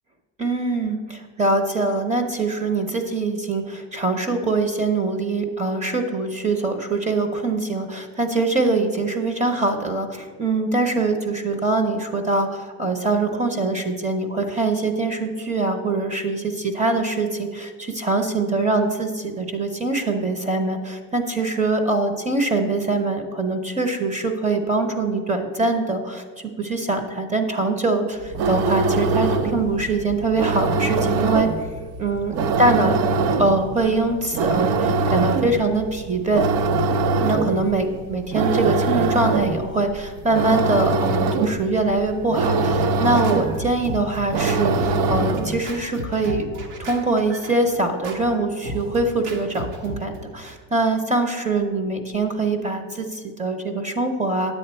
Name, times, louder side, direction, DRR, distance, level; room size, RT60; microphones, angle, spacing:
voice 1, 0.4-31.5 32.0-33.0 33.4-36.5 37.2-46.5 46.8-54.5, right 3 dB, 20° right, 6 dB, 0.7 m, -23 dB
sound 1, 28.2-45.7, right 3 dB, 65° right, 0.7 m, -23 dB
Scratching (performance technique), 42.1-50.5, equal, 80° right, 1.6 m, -35 dB
9.8 x 7.9 x 4.3 m, 1.5 s
cardioid pair, 140°, 37 cm